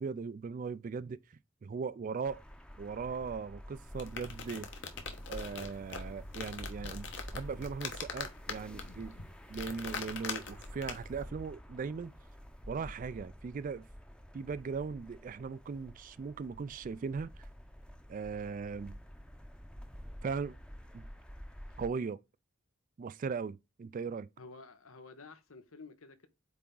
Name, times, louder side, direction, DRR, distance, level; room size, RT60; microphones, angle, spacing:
voice 1, 0.0-2.4 2.8-4.7 5.3-9.2 9.5-12.1 12.7-13.9 14.3-17.5 18.1-19.0 20.2-20.6 20.9-21.1 21.8-22.2 23.0-24.3, right 5 dB, 40° right, 0.3 m, -39 dB
sound 1, 2.2-21.9, equal, 5° left, 0.7 m, -49 dB
sound 2, 3.8-11.2, left 5 dB, 60° left, 1.2 m, -43 dB
voice 2, 24.4-26.3, left 3 dB, 85° left, 1.1 m, -51 dB
8.4 x 3.5 x 3.8 m
head